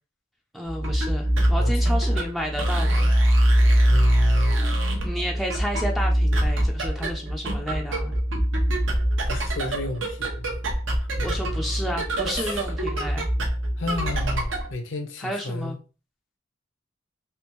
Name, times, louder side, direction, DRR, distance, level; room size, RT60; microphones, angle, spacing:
voice 1, 0.5-3.1 5.0-8.1 11.2-13.3 15.2-15.8, equal, ahead, 0.4 m, -31 dB
sound 1, 0.7-14.7, equal, 85° right, 0.9 m, -23 dB
voice 2, 1.6-2.0 3.8-4.6 9.3-10.6 11.2-11.9 12.3-12.7 13.8-15.7, left 2 dB, 70° left, 0.7 m, -33 dB
3.5 x 2.9 x 2.9 m
head